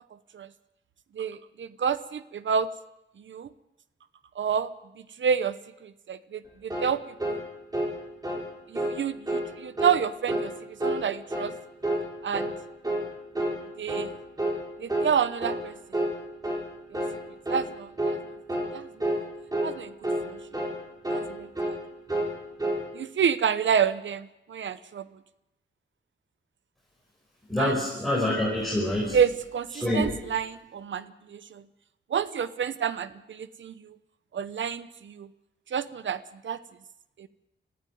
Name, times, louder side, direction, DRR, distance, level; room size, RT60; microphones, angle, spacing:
voice 1, 1.1-2.7 3.3-3.5 4.4-4.7 5.2-5.6 5.8-7.4 8.7-10.5 10.8-11.5 12.2-12.5 13.8-14.1 14.8-15.7 16.9-17.0 17.5-18.2 18.7-19.3 19.6-19.9 20.2-20.4 21.1-21.8 22.9-25.0 27.6-27.7 29.1-31.6 32.1-34.0 34.3-35.3 35.7-36.6 37.2-37.3, right 7 dB, 75° right, 14 dB, 0.8 m, -29 dB
sound 1, 6.7-6.9 7.2-7.4 7.7-8.0 8.2-8.5 8.8-9.0 9.3-9.5 9.8-10.0 10.3-10.5 10.8-11.0 11.3-11.5 11.8-12.1 12.3-12.6 12.8-13.1 13.4-13.6 13.9-14.1 14.4-14.6 14.9-15.1 15.4-15.6 15.9-16.2 16.4-16.7 16.9-17.2 17.5-17.7 18.0-18.2 18.5-18.7 19.0-19.2 19.5-19.7 20.0-20.3 20.5-20.8 21.0-21.3 21.6-21.8 22.1-22.8, right 1 dB, 20° right, 4.5 m, -29 dB
voice 2, 27.5-29.2 29.7-30.1, left 1 dB, ahead, -4 dB, 5.4 m, -26 dB
26.0 x 15.0 x 9.3 m, 0.93 s
wide cardioid pair, 150°, 20 cm